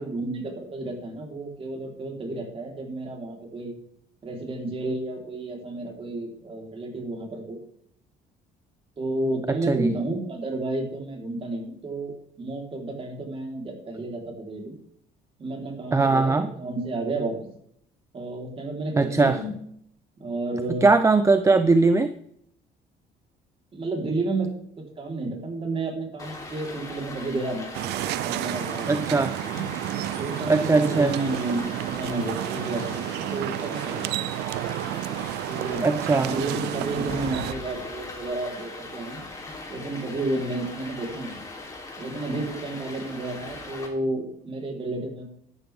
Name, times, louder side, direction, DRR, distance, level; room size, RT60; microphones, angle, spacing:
voice 1, 0.0-3.7 4.2-7.6 9.0-14.7 15.4-17.3 18.1-19.5 20.2-20.8 23.7-29.2 29.5-29.7 30.2-34.1 35.5-35.9 36.2-39.2 39.7-41.4 42.0-45.2, right 2 dB, 35° right, 0 dB, 4.0 m, -31 dB
voice 2, 9.5-9.9 15.9-16.5 19.0-19.4 20.8-22.1 28.9-29.3 30.5-31.1 35.8-36.3, right 3 dB, 15° right, 10 dB, 0.6 m, -20 dB
Stream, 26.2-43.9, left 2 dB, 20° left, 3.4 m, -40 dB
sound 1, 27.7-37.5, right 16 dB, 80° right, 0.4 m, -31 dB
12.0 x 12.0 x 3.6 m, 0.68 s
cardioid pair, 110°, 17 cm